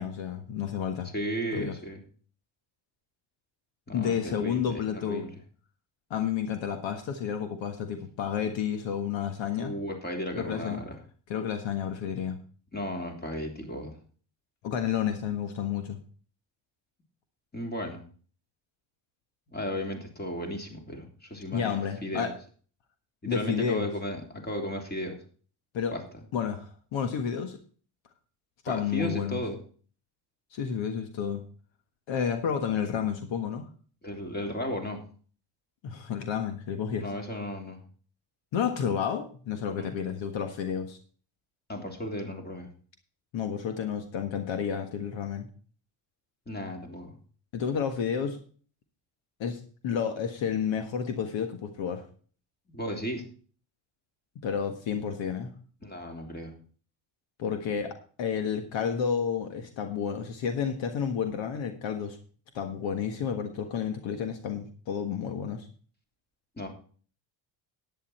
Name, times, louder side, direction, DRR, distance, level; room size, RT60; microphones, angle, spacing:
voice 1, 0.0-1.1 1.5-1.7 3.9-5.3 6.1-9.7 10.3-10.8 11.3-12.4 14.6-16.0 21.5-22.3 23.3-23.9 25.7-25.9 26.3-27.6 28.6-29.4 30.5-31.4 32.1-33.7 35.8-37.1 38.5-41.0 43.3-45.5 47.5-48.4 49.4-52.0 54.4-55.5 57.4-62.2 62.5-65.7, left 7 dB, 70° left, 7 dB, 1.6 m, -31 dB
voice 2, 1.1-2.0 3.9-5.3 9.6-11.0 12.7-14.0 17.5-18.0 19.5-22.3 23.2-25.2 25.9-26.0 28.7-29.6 34.0-35.0 37.0-37.8 39.7-39.9 41.7-42.7 46.5-47.1 52.7-53.2 55.8-56.5 66.6-66.7, equal, 20° left, 3 dB, 3.4 m, -35 dB
11.0 x 9.6 x 4.3 m, 0.42 s
cardioid pair, 95°, 47 cm